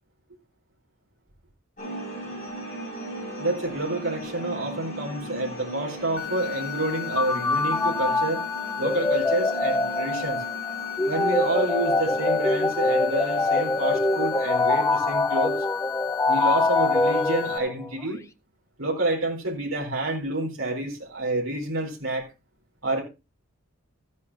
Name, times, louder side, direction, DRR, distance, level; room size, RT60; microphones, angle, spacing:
sound 1, 1.8-16.4, right 1 dB, 35° left, 6.1 m, -39 dB
voice 1, 3.4-8.4 8.8-10.4 11.1-15.6 16.3-18.2 18.8-22.3 22.8-23.0, right 2 dB, 65° right, 4.0 m, -28 dB
sound 2, 6.2-17.6, left 13 dB, 65° left, 0.6 m, -35 dB
sound 3, 7.2-17.9, left 2 dB, 15° left, 0.5 m, -24 dB
15.0 x 9.5 x 2.8 m
head